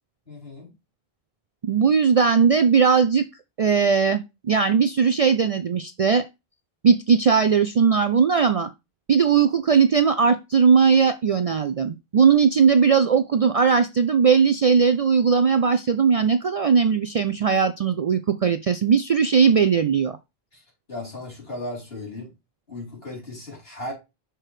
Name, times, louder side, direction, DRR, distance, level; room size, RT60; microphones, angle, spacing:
voice 1, 0.3-0.7 20.5-20.6 20.9-22.3 22.7-23.9, left 1 dB, 70° left, 4.3 m, -36 dB
voice 2, 1.6-3.2 3.6-6.3 6.8-8.7 9.1-20.2, right 6 dB, 55° right, 0.4 m, -19 dB
6.1 x 4.5 x 4.8 m
omnidirectional pair, 1.0 m